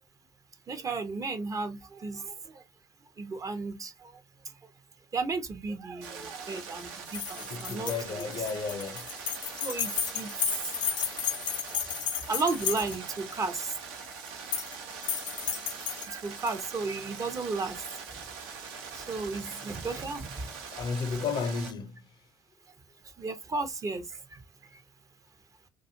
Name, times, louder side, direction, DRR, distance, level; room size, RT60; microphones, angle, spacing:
voice 1, 0.7-2.6 3.2-4.5 5.1-8.2 9.6-10.3 11.7-11.9 12.2-13.8 16.0-18.2 18.9-20.7 23.0-24.4 24.7-24.8, right 3 dB, 30° right, 0.6 m, -34 dB
sound 1, 6.0-21.7, right 5 dB, 70° right, 0.7 m, -43 dB
sound 2, 7.1-13.2 14.3-14.8 15.0-16.6, left 8 dB, 80° left, 0.6 m, -33 dB
voice 2, 7.5-9.1 20.7-22.0, left 5 dB, 45° left, 0.6 m, -33 dB
2.4 x 2.3 x 2.7 m
hypercardioid pair, 60°, 11 cm